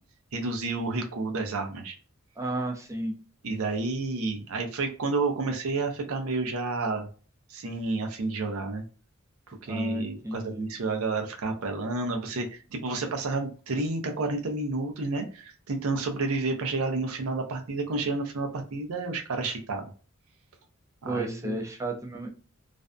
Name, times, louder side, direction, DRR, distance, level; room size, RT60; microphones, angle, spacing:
voice 1, 0.3-2.0 3.4-7.1 7.5-8.8 9.5-19.8 21.0-21.6, right 3 dB, 85° right, 4 dB, 0.6 m, -30 dB
voice 2, 2.4-3.1 9.7-10.7 21.0-22.3, right 1 dB, 15° right, 2 dB, 0.5 m, -32 dB
2.5 x 2.1 x 2.4 m, 0.36 s
head